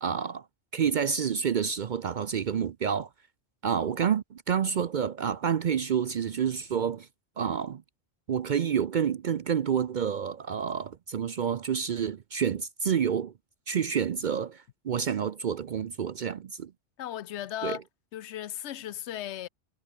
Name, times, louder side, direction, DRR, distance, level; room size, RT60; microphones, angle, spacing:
voice 1, 0.0-0.5 0.7-3.1 3.6-7.1 7.4-7.8 8.3-13.3 13.7-16.7 17.6-17.8, right 7 dB, 55° right, 0.6 m, -28 dB
voice 2, 17.0-17.8 18.1-19.5, left 12 dB, 85° left, 1.0 m, -36 dB
omnidirectional pair, 1.1 m